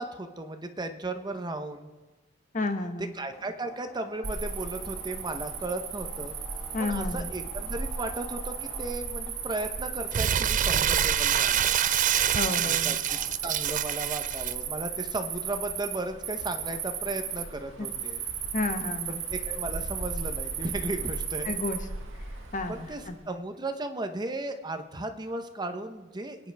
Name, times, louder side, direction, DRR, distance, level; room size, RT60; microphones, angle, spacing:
voice 1, 0.0-1.9 3.1-6.3 6.8-11.8 12.4-18.2 19.1-21.6 22.7-26.4, right 2 dB, 20° right, 7 dB, 0.9 m, -35 dB
voice 2, 2.5-3.1 6.7-7.3 12.3-13.0 17.8-17.9 18.5-19.2 21.4-21.8 22.5-23.2, left 2 dB, 40° left, 7 dB, 1.0 m, -31 dB
sound 1, 2.6-13.4, equal, 5° left, 2.0 m, -51 dB
Cricket, 4.2-23.2, right 6 dB, 80° right, 1.7 m, -35 dB
Crumpling crinkling, 10.1-14.5, right 10 dB, 40° right, 0.4 m, -26 dB
24.5 x 9.9 x 3.4 m, 1.2 s
head